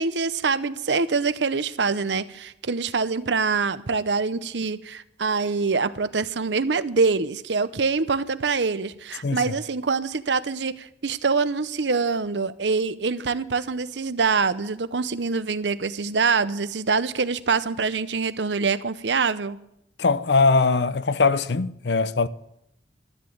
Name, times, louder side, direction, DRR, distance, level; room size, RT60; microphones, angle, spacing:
voice 1, 0.0-19.6, right 4 dB, 85° right, 0.8 m, -25 dB
voice 2, 9.2-9.5 20.0-22.3, left 4 dB, 70° left, 0.7 m, -21 dB
13.5 x 10.5 x 7.9 m
head